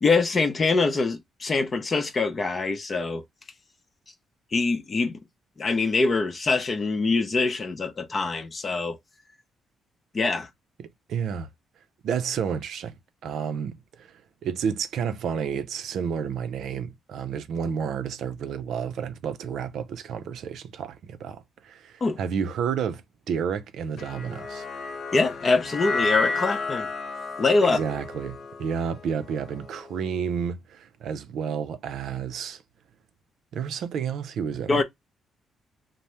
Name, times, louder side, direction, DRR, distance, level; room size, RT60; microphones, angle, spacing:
voice 1, 0.0-3.2 4.5-5.2 5.6-9.0 10.1-10.5 22.0-22.2 25.1-26.9 27.4-27.8 34.7-34.8, left 3 dB, 35° left, 0.6 m, -24 dB
voice 2, 10.8-11.5 12.0-12.9 13.2-23.0 23.3-24.7 27.6-32.6 33.5-34.8, right 7 dB, 75° right, 0.4 m, -31 dB
sound 1, 24.0-30.3, left 3 dB, 70° left, 0.8 m, -32 dB
2.7 x 2.0 x 3.2 m
cardioid pair, 90°, 0 cm